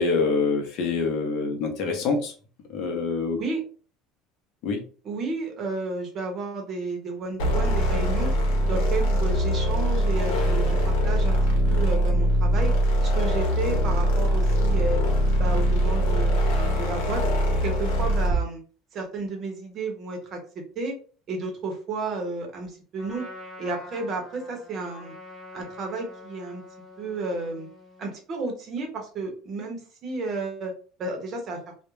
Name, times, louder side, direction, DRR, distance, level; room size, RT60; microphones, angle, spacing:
voice 1, 0.0-2.3 2.7-3.4 4.6-4.8, left 4 dB, 55° left, 3 dB, 0.7 m, -25 dB
voice 2, 5.0-8.3 8.7-11.4 11.7-12.7 13.0-15.0 15.3-17.2 17.6-18.6 18.9-20.4 20.8-21.0 21.3-23.3 23.6-25.1 25.5-26.6 27.0-27.7 28.0-30.7 31.0-31.6, right 3 dB, 40° right, 2 dB, 0.7 m, -32 dB
sound 1, 7.4-18.5, equal, 85° left, 0.8 m, -22 dB
Trumpet, 23.0-28.2, left 2 dB, 10° left, 1.1 m, -45 dB
2.3 x 2.1 x 3.0 m, 0.39 s
cardioid pair, 145°, 0 cm